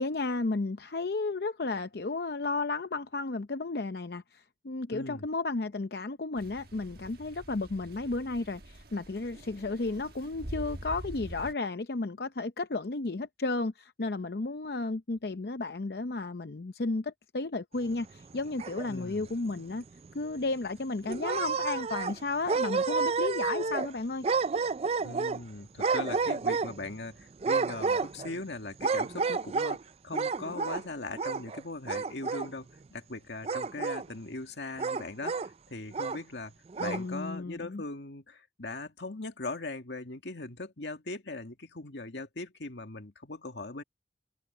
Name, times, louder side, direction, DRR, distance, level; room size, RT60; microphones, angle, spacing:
voice 1, 0.0-19.8 20.1-24.3 36.8-37.8, left 3 dB, 65° left, 0.7 m, -33 dB
voice 2, 4.9-5.3 18.9-19.3 25.0-36.5 36.8-43.8, left 2 dB, 85° left, 2.0 m, -40 dB
sound 1, 6.4-11.5, right 1 dB, 60° right, 1.4 m, -45 dB
sound 2, 18.2-19.1 19.6-19.7 20.0-20.1 21.0-22.2 22.5-23.9 24.2-25.4 25.8-26.9 27.4-28.4 28.8-29.8 30.1-30.8 31.1-31.6 31.9-32.5 33.4-34.1 34.8-35.5 35.9-36.2 36.7-37.0, right 4 dB, 35° right, 0.3 m, -30 dB
head